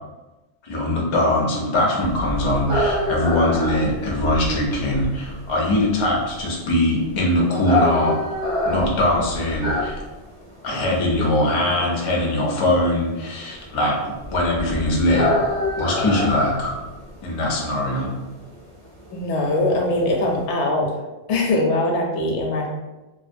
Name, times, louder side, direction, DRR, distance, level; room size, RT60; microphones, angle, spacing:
voice 1, 0.6-8.3 8.6-10.0 10.6-15.3 15.8-16.7 17.2-18.1, left 1 dB, 45° left, -2 dB, 0.4 m, -21 dB
sound 1, 2.0-20.4, left 1 dB, 35° right, 0.5 m, -27 dB
voice 2, 19.1-20.9 21.3-22.7, left 2 dB, 80° left, 0 dB, 0.9 m, -21 dB
2.4 x 2.2 x 2.5 m, 1.1 s
omnidirectional pair, 1.2 m